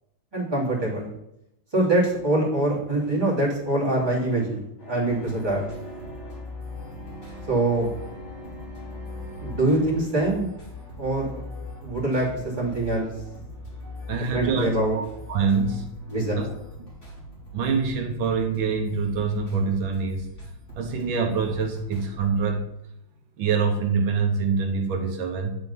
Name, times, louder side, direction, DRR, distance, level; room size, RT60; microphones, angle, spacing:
voice 1, 0.3-1.1 1.7-5.6 7.5-7.9 9.4-10.5 11.0-11.4 11.8-12.3 12.6-13.1 14.3-15.0 16.1-16.4, right 2 dB, 10° right, -7 dB, 2.6 m, -24 dB
sound 1, 4.8-10.0, right 1 dB, 75° left, 3.2 m, -42 dB
sound 2, 5.0-22.5, left 1 dB, 25° left, 3.0 m, -41 dB
voice 2, 14.1-15.9 16.4-16.5 17.5-20.3 20.8-22.7 23.4-25.6, right 5 dB, 80° right, 3 dB, 1.7 m, -25 dB
8.1 x 4.6 x 5.5 m, 0.83 s
omnidirectional pair, 2.2 m